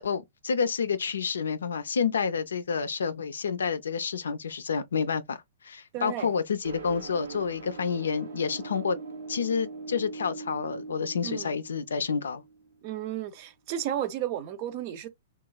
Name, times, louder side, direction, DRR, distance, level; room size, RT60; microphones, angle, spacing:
voice 1, 0.0-9.0 9.3-12.4, left 6 dB, 85° left, 0.4 m, -29 dB
voice 2, 5.9-6.3 11.2-11.5 12.8-15.1, right 11 dB, 45° right, 0.5 m, -33 dB
sound 1, 6.6-13.0, right 4 dB, 80° right, 0.8 m, -42 dB
3.0 x 2.2 x 2.2 m
hypercardioid pair, 125°, 0 cm